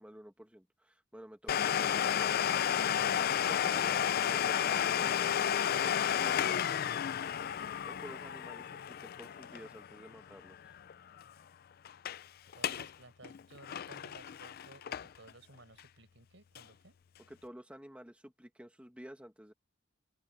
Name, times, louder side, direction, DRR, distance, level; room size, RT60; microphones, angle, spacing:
voice 1, 0.0-3.0 3.4-6.7 7.9-10.7 17.3-19.5, equal, 5° right, 1.7 m, -52 dB
Domestic sounds home sounds, 1.5-10.9 11.2-11.3 11.9-12.2 12.5-12.9 13.2-15.3 15.8-15.9 16.6-16.7, left 9 dB, 55° left, 0.4 m, -32 dB
voice 2, 12.6-17.0, right 2 dB, 80° right, 4.8 m, -57 dB
open air
head